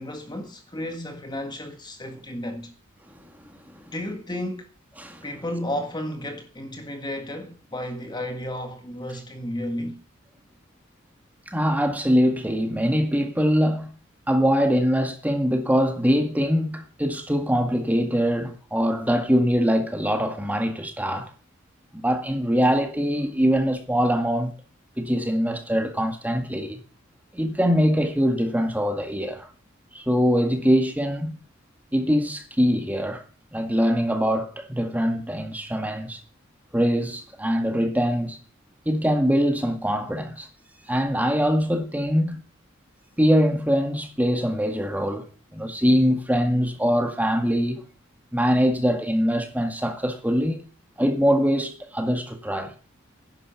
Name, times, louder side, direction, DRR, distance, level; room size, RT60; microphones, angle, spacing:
voice 1, 0.0-2.7 3.9-4.7 5.2-10.0, left 1 dB, 20° left, 1.7 m, -33 dB
voice 2, 11.5-14.0 14.3-21.3 22.0-24.5 25.0-26.8 27.3-29.5 29.9-31.4 31.9-33.2 33.5-36.2 36.7-38.4 38.9-40.5 40.9-42.4 43.2-47.8 48.3-50.6 51.0-52.7, equal, 10° right, 1.9 m, -23 dB
11.0 x 11.0 x 7.0 m
head